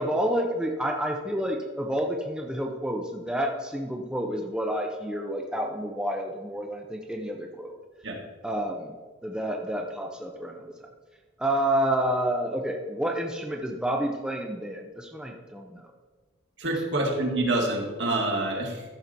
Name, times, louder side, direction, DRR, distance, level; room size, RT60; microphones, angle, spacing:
voice 1, 0.0-7.7 8.4-8.9 9.2-10.7 11.4-15.8, right 1 dB, 5° right, 1 dB, 0.7 m, -29 dB
voice 2, 16.6-18.8, right 2 dB, 65° right, 0 dB, 2.0 m, -27 dB
14.0 x 6.0 x 4.0 m, 1.3 s
head